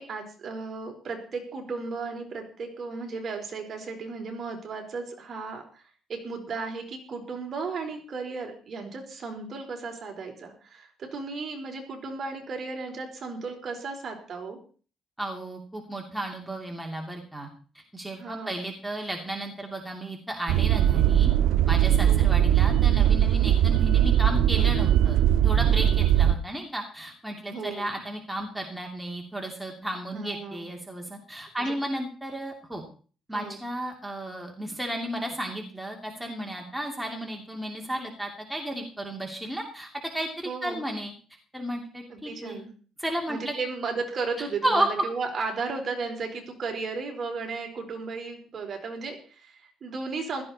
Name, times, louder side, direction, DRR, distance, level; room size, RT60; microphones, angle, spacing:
voice 1, 0.0-5.8 6.1-14.6 18.2-18.6 22.0-22.3 27.5-27.9 30.1-30.7 33.3-33.6 40.4-40.8 42.1-42.7 43.3-50.4, right 4 dB, 40° right, 3 dB, 4.3 m, -35 dB
voice 2, 15.2-17.5 17.7-21.3 21.7-32.8 33.3-39.9 40.1-41.1 41.5-42.6 43.0-43.5 44.4-45.0, right 1 dB, ahead, 1 dB, 2.6 m, -33 dB
sound 1, 20.5-26.3, right 11 dB, 85° right, 0.7 m, -20 dB
16.0 x 14.0 x 4.3 m, 0.39 s
cardioid pair, 150°, 0 cm